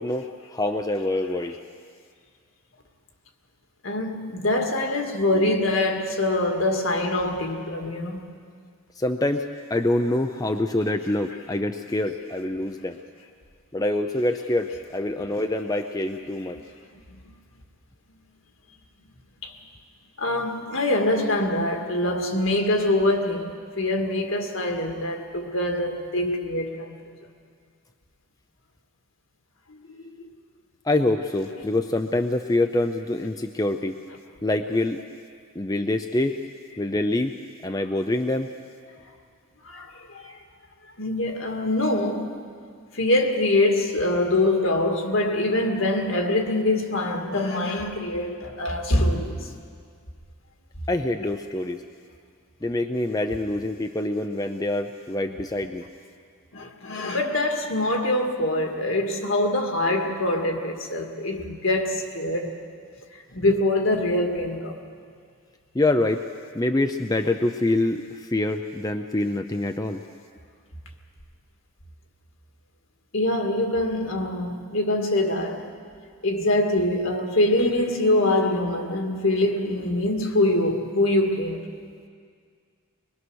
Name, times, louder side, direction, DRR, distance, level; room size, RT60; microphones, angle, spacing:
voice 1, 0.0-1.5 9.0-9.4 9.7-13.0 13.7-16.6 30.8-33.9 34.4-35.0 35.5-36.3 36.8-37.3 37.6-38.5 50.9-51.8 52.6-55.9 65.7-66.2 66.5-70.0, left 2 dB, 15° left, 0.6 m, -25 dB
voice 2, 3.8-8.3 17.1-17.2 19.4-19.6 20.2-27.2 29.7-30.1 39.6-40.4 41.0-42.4 42.9-49.5 56.5-62.6 63.3-64.8 73.1-75.7 76.2-81.6, left 1 dB, 65° left, 2.1 m, -24 dB
22.5 x 22.5 x 6.3 m
head